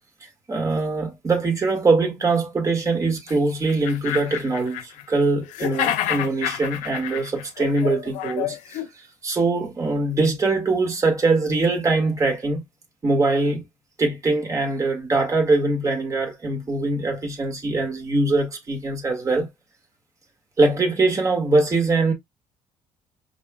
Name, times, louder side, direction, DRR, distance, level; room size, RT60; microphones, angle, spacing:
voice 1, 0.5-8.8 9.2-12.6 13.0-13.6 14.0-19.5 20.6-22.1, right 3 dB, 25° right, 1.6 m, -22 dB
sound 1, 3.3-3.4 3.7-5.2 5.5-8.9, left 11 dB, 85° left, 0.6 m, -29 dB
5.5 x 2.7 x 2.2 m
cardioid pair, 105°, 12 cm